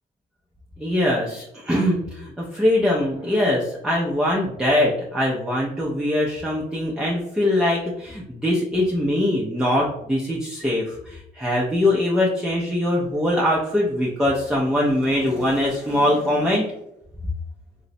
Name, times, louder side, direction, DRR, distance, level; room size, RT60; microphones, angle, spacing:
voice 1, 0.8-16.7, left 1 dB, 5° right, -4 dB, 0.5 m, -22 dB
3.8 x 2.0 x 2.6 m, 0.79 s
cardioid pair, 110°, 17 cm